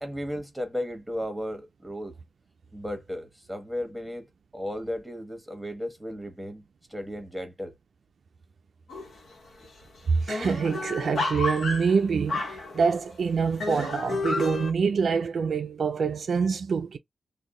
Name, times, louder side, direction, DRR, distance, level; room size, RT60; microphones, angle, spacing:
voice 1, 0.0-2.2 2.7-4.3 4.5-6.6 6.9-7.7, equal, 5° right, 1.2 m, -34 dB
sound 1, 8.9-9.3 9.6-9.7 10.0-13.1 13.6-14.7, left 3 dB, 75° left, 1.0 m, -31 dB
voice 2, 10.1-17.0, right 5 dB, 75° right, 0.3 m, -26 dB
2.6 x 2.2 x 3.7 m
cardioid pair, 50°, 0 cm